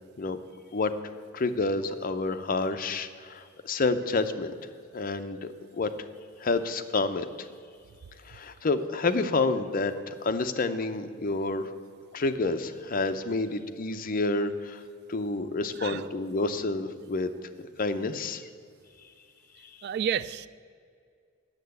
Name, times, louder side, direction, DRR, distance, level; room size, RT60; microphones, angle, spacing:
voice 1, 1.3-4.5 4.9-5.9 6.4-7.5 8.3-11.7 12.1-14.8 15.1-17.3 17.6-18.5, left 3 dB, 45° left, 9 dB, 0.6 m, -29 dB
voice 2, 19.8-20.5, right 8 dB, 50° right, 16 dB, 0.3 m, -30 dB
9.1 x 7.5 x 8.0 m, 2.3 s
head